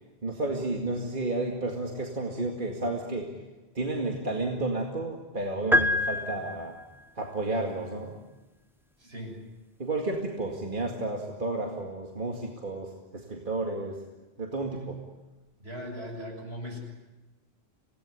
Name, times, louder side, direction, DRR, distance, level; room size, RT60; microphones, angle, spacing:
voice 1, 0.2-3.4 3.7-6.8 7.2-8.2 9.8-14.1 14.4-15.0, right 2 dB, 50° right, 1 dB, 2.4 m, -32 dB
sound 1, 5.7-7.0, left 1 dB, ahead, 0.9 m, -26 dB
voice 2, 9.0-9.4 15.6-16.8, equal, 70° right, 1 dB, 6.9 m, -39 dB
27.0 x 18.0 x 9.8 m, 1.1 s
omnidirectional pair, 1.1 m